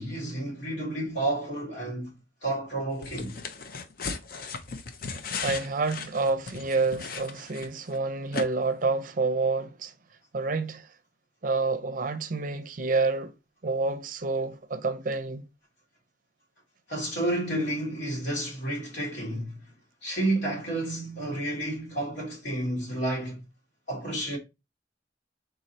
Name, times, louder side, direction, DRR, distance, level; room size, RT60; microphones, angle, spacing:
voice 1, 0.0-2.1 2.4-3.4 16.9-19.6 20.0-23.4 23.9-24.4, right 1 dB, 80° left, 2.4 m, -30 dB
sound 1, 3.0-8.0 8.3-8.4, left 4 dB, 55° left, 0.5 m, -36 dB
voice 2, 5.4-9.9 10.3-10.9 11.4-13.3 13.6-15.4, right 3 dB, 50° right, 0.5 m, -28 dB
3.8 x 2.7 x 4.2 m
head